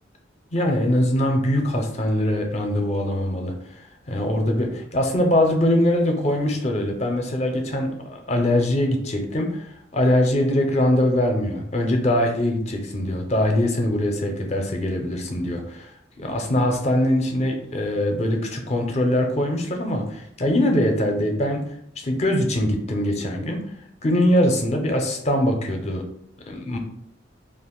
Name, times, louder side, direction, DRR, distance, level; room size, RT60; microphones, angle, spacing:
voice 1, 0.5-3.5 4.1-15.9 16.2-21.7 22.0-23.6 24.0-26.0 26.4-26.8, left 1 dB, 35° left, 3 dB, 0.5 m, -22 dB
2.5 x 2.4 x 3.6 m, 0.69 s
head